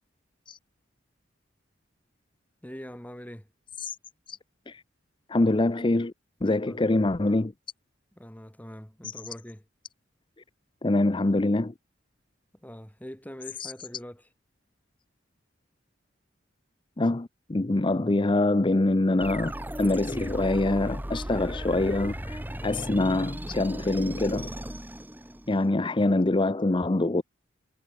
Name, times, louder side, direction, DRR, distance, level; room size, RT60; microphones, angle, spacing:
voice 1, 2.6-3.5 6.7-6.8 8.2-9.6 12.6-14.2, equal, 10° left, 3.3 m, -43 dB
voice 2, 5.3-6.1 6.4-7.5 9.0-9.1 10.8-11.7 13.6-13.7 17.0-19.5 19.8-24.5 25.5-27.2, left 2 dB, 25° left, 0.6 m, -25 dB
sound 1, 19.2-25.7, equal, 10° right, 2.1 m, -36 dB
head